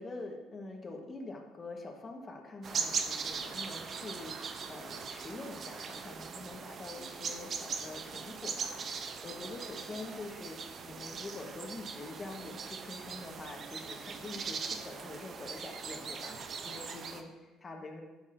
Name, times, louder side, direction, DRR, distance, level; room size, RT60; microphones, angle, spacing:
voice 1, 0.0-18.0, left 2 dB, 35° left, 2 dB, 1.3 m, -45 dB
sound 1, 2.6-17.2, right 5 dB, 50° right, 0.6 m, -40 dB
9.9 x 5.9 x 2.6 m, 1.1 s
hypercardioid pair, 65°, 0 cm